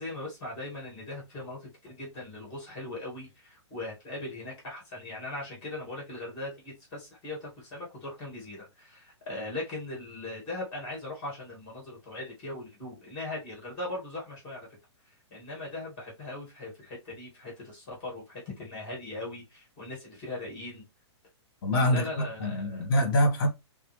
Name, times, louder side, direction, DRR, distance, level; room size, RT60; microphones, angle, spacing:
voice 1, 0.0-14.7 15.3-20.9 21.9-22.9, left 2 dB, 30° left, 2.3 m, -39 dB
voice 2, 21.6-23.5, left 1 dB, 50° left, 1.6 m, -25 dB
5.6 x 2.1 x 3.2 m
hypercardioid pair, 160°, 15 cm